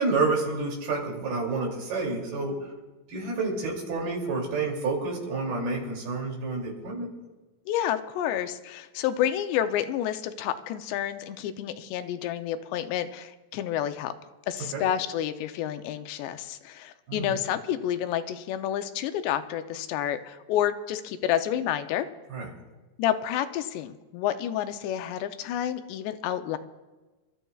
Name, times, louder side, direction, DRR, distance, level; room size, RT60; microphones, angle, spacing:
voice 1, 0.0-2.6 3.1-7.1 14.7-14.8 17.1-17.4 22.3-22.5, right 3 dB, 65° right, -1 dB, 4.7 m, -29 dB
voice 2, 7.7-14.1 14.5-22.1 23.0-26.6, left 11 dB, 90° left, 9 dB, 2.9 m, -29 dB
29.0 x 13.5 x 2.4 m, 1.2 s
omnidirectional pair, 4.8 m